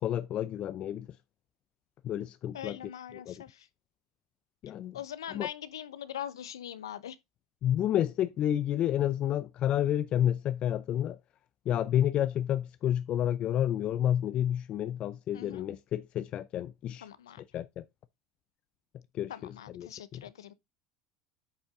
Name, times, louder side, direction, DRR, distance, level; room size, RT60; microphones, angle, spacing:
voice 1, 0.0-1.1 2.0-2.8 3.3-3.4 4.6-5.0 5.3-5.5 7.6-11.2 11.7-17.1 17.5-17.8 19.1-20.2, left 11 dB, 50° left, 0.5 m, -30 dB
voice 2, 2.5-3.7 4.9-7.2 15.3-15.7 17.0-17.4 19.3-20.5, left 10 dB, 85° left, 0.7 m, -42 dB
8.6 x 5.3 x 3.6 m
hypercardioid pair, 80°, 2 cm